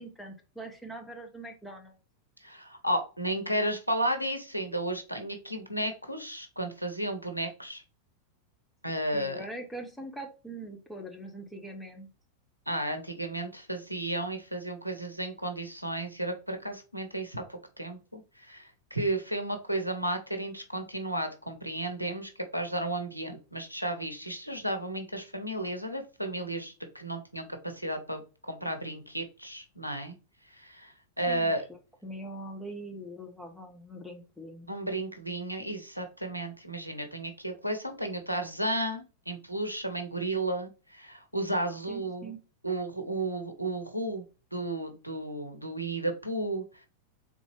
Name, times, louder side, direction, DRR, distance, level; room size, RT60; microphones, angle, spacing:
voice 1, 0.0-2.0 9.1-12.1 31.3-31.5 32.0-34.7 41.9-42.4, right 1 dB, 5° left, 3 dB, 1.0 m, -42 dB
voice 2, 2.4-7.8 8.8-9.5 12.7-30.1 30.4-31.6 34.7-42.3 42.6-44.2 44.5-46.9, right 1 dB, 90° right, 6 dB, 0.8 m, -33 dB
3.9 x 3.6 x 3.2 m, 0.33 s
figure-of-eight pair, 90°, 0 cm